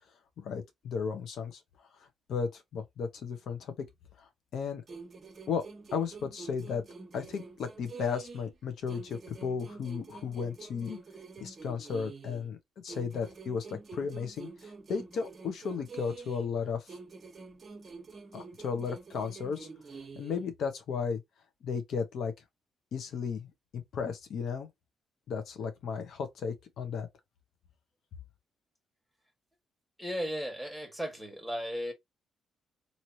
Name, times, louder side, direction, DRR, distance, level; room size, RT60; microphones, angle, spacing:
voice 1, 0.4-1.6 2.3-3.8 4.2-4.8 5.5-5.6 5.9-6.8 7.1-11.0 11.4-12.6 12.8-17.0 18.3-19.7 20.2-21.2 21.6-22.3 22.9-24.7 25.3-27.1, left 6 dB, 70° left, 0.9 m, -35 dB
sound 1, 4.9-8.6 8.9-12.5 12.9-16.6 16.9-20.5, right 4 dB, 35° right, 1.0 m, -47 dB
voice 2, 30.0-31.9, equal, 5° left, 1.5 m, -35 dB
3.1 x 2.7 x 2.7 m
cardioid pair, 90°, 0 cm